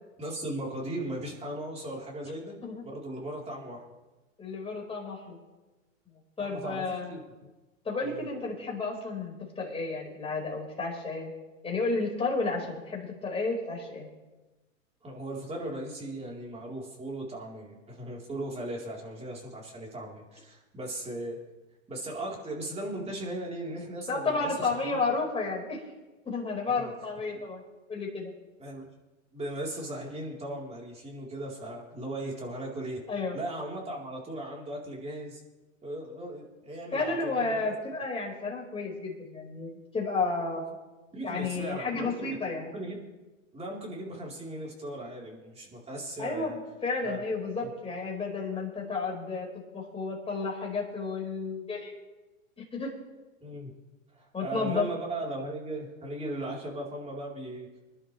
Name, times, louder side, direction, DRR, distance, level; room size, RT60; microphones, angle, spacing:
voice 1, 0.2-2.5 2.8-3.8 6.4-7.5 8.0-8.3 15.0-21.4 21.9-25.1 26.8-26.9 28.6-28.9 29.3-33.0 33.3-35.4 35.8-37.7 41.1-42.4 42.6-43.0 43.5-46.6 47.0-47.2 47.6-47.7 53.4-53.7 54.1-57.7, right 1 dB, 15° right, -2 dB, 4.1 m, -37 dB
voice 2, 4.4-5.4 6.4-7.2 7.8-11.3 11.6-14.1 24.1-25.8 26.2-27.6 27.9-28.3 33.1-33.4 36.9-40.8 41.2-42.7 46.2-49.5 49.7-51.9 52.7-52.9 54.3-54.9, left 3 dB, 15° left, -2 dB, 5.1 m, -32 dB
26.5 x 11.5 x 3.4 m, 1.1 s
hypercardioid pair, 115°, 39 cm